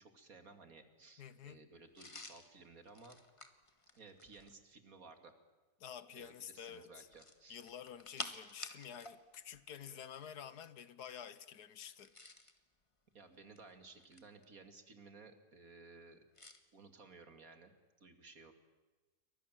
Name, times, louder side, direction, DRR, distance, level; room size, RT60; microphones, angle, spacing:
voice 1, 0.0-3.2 4.0-5.3 6.2-7.6 13.1-16.2 16.7-17.7 18.0-18.5, right 3 dB, 60° right, 2.7 m, -57 dB
voice 2, 1.2-1.6 5.8-7.1 7.5-12.1, left 8 dB, 80° left, 1.6 m, -50 dB
sound 1, 1.9-4.6 7.0-9.2 9.5-9.6 11.9-12.6 13.3-14.4 16.3-16.6, left 2 dB, 20° left, 1.6 m, -50 dB
29.0 x 24.0 x 7.5 m
omnidirectional pair, 1.7 m